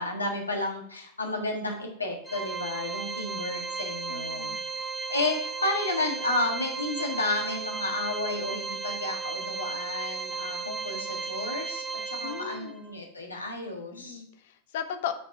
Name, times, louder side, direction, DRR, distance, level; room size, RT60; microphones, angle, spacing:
voice 1, 0.0-4.6 5.1-14.2, left 2 dB, 80° left, 0 dB, 1.6 m, -32 dB
Organ, 2.3-12.9, right 4 dB, 5° right, 0.7 m, -35 dB
voice 2, 4.1-4.6 12.2-12.7 13.9-15.1, left 9 dB, 55° left, 8 dB, 0.8 m, -36 dB
6.7 x 4.1 x 5.6 m, 0.67 s
figure-of-eight pair, 90°, 0 cm